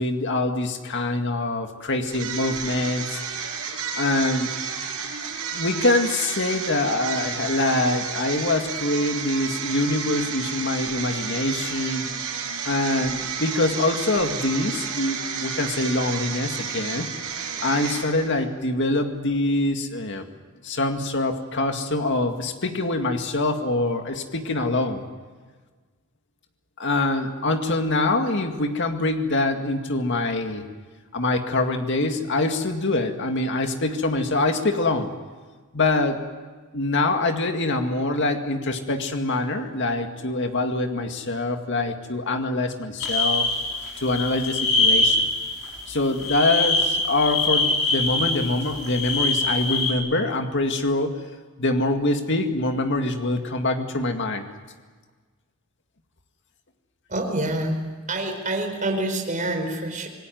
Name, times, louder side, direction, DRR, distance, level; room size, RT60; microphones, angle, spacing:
voice 1, 0.0-3.2 4.0-4.5 5.5-12.0 12.6-17.1 17.6-20.3 20.6-25.0 26.8-30.6 31.1-35.1 35.7-36.3 36.7-43.5 44.0-45.3 45.9-51.2 51.6-54.5, left 2 dB, 55° left, 5 dB, 2.1 m, -24 dB
sound 1, 2.1-18.4, right 6 dB, 90° right, 6.8 m, -31 dB
sound 2, 43.0-49.9, left 2 dB, 75° left, 4.7 m, -24 dB
voice 2, 57.1-57.8 58.1-60.1, right 1 dB, 35° right, 3 dB, 4.7 m, -26 dB
27.0 x 18.5 x 9.4 m, 1.4 s
head